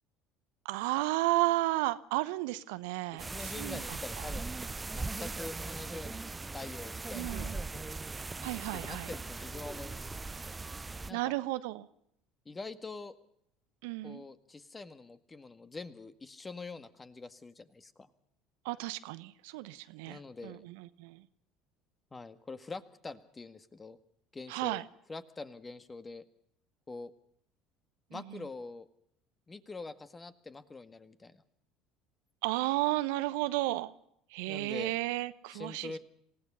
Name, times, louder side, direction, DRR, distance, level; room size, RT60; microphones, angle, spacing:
voice 1, 0.7-4.0 7.1-7.5 8.4-9.1 11.1-11.9 13.8-14.2 18.6-21.2 24.5-24.8 28.1-28.2 32.4-33.9 34.3-35.9, right 18 dB, 70° right, 14 dB, 0.9 m, -33 dB
sound 1, 3.2-11.1, right 3 dB, 20° right, 0.7 m, -39 dB
voice 2, 3.3-4.5 4.9-7.9 8.7-10.1 11.1-11.4 12.5-13.1 14.0-18.1 20.1-20.6 22.1-24.0 24.3-24.8 25.1-26.2 26.9-27.1 28.1-28.9 29.5-31.4 34.5-34.9 35.5-36.0, left 3 dB, 20° left, 10 dB, 1.8 m, -45 dB
27.5 x 17.0 x 5.6 m, 0.71 s
figure-of-eight pair, 65°, 0 cm